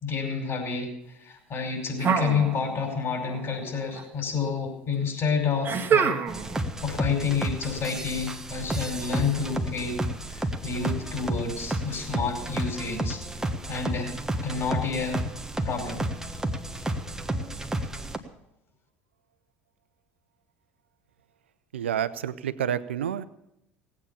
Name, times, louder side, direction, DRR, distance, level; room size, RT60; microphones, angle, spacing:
voice 1, 0.0-6.2 6.8-10.0 10.3-13.2 13.7-14.1 14.4-15.3 15.6-16.1, left 5 dB, 45° left, 3 dB, 5.2 m, -29 dB
sound 1, 2.0-3.0 3.3-4.0 5.6-6.6, right 7 dB, 35° right, 1.6 m, -26 dB
sound 2, 6.3-18.2, right 1 dB, 10° right, 1.4 m, -32 dB
voice 2, 21.7-23.3, right 9 dB, 85° right, 15 dB, 0.6 m, -29 dB
17.0 x 8.7 x 7.0 m, 0.82 s
hypercardioid pair, 70°, 6 cm